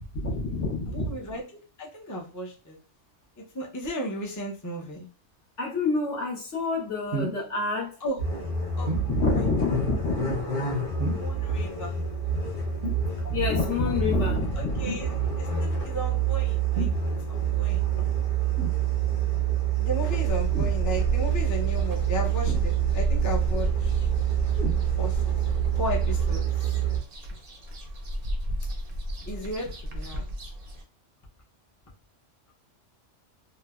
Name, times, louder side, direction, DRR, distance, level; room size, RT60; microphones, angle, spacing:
voice 1, 0.0-1.1 5.6-7.9 9.1-10.4 11.0-11.2 13.2-14.8, left 3 dB, 75° left, -2 dB, 1.3 m, -27 dB
voice 2, 0.9-2.8 3.4-5.1 8.0-8.2 8.8-8.9 9.3-9.5 11.2-12.0 14.6-17.8 19.8-24.1 25.0-26.8 29.2-30.2, equal, 25° left, -2 dB, 0.4 m, -35 dB
sound 1, 7.1-7.4 8.9-9.1 11.0-11.4 12.8-13.1 14.8-15.1 16.7-17.0 18.6-18.8 20.5-20.8 22.5-23.0 24.6-24.8 25.6-25.7, right 3 dB, 65° right, 0.9 m, -32 dB
sound 2, 8.2-27.0, right 8 dB, 45° left, 1.2 m, -27 dB
sound 3, 20.3-30.8, equal, 50° right, 0.5 m, -32 dB
3.2 x 2.1 x 2.3 m, 0.36 s
omnidirectional pair, 1.3 m